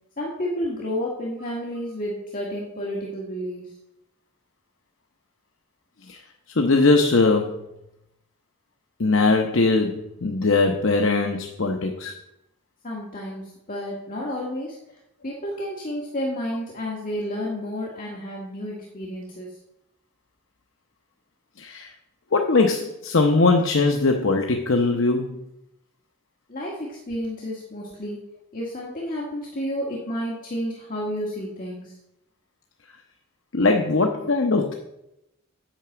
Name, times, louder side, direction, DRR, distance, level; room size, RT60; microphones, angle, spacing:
voice 1, 0.2-3.7 12.8-14.8 15.2-19.6 26.5-28.2 28.5-31.9, equal, 40° left, -4 dB, 1.7 m, -31 dB
voice 2, 6.6-7.6 9.0-12.1 21.6-21.9 22.3-25.3 33.5-34.7, left 3 dB, 60° left, 3 dB, 0.8 m, -20 dB
8.9 x 5.9 x 7.8 m, 0.86 s
head